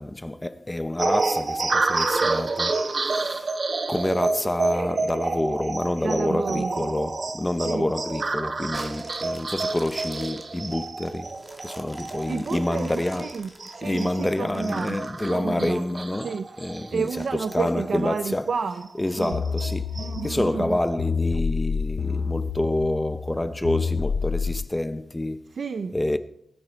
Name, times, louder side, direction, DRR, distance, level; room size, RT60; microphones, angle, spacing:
voice 1, 0.0-3.6 3.9-11.3 11.6-13.4 13.8-16.3 16.6-18.5 19.0-19.9 20.2-25.4 25.9-26.2, left 1 dB, 10° left, 0.7 m, -28 dB
sound 1, 1.0-17.9 18.2-18.3 18.7-20.3, right 3 dB, 35° right, 0.9 m, -29 dB
voice 2, 6.0-6.9 7.7-7.9 12.3-15.0 15.3-15.9 16.2-16.4 16.9-18.8 19.2-19.4 20.0-20.8 25.5-26.2, right 5 dB, 60° right, 0.6 m, -30 dB
sound 2, 8.7-16.0 16.5-16.6 17.1-18.3 18.9-19.0, right 1 dB, 10° right, 2.0 m, -48 dB
sound 3, 19.3-24.6, left 5 dB, 80° left, 0.5 m, -28 dB
20.0 x 9.3 x 4.5 m
wide cardioid pair, 140°, 0 cm